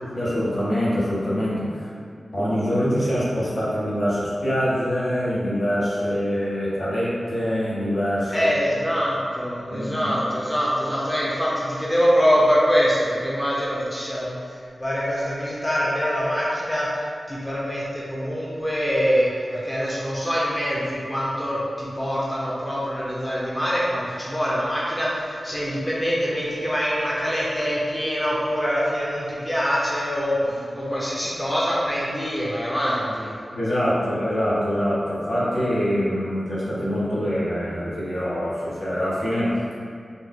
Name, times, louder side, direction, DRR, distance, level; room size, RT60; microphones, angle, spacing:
voice 1, 0.0-1.9 2.3-8.5 9.7-10.1 30.4-30.5 33.5-39.5, equal, 60° left, -9 dB, 1.2 m, -24 dB
voice 2, 8.3-14.3 14.8-33.3, equal, 10° left, -6 dB, 0.6 m, -24 dB
4.2 x 2.7 x 3.7 m, 2.3 s
wide cardioid pair, 85°, 0 cm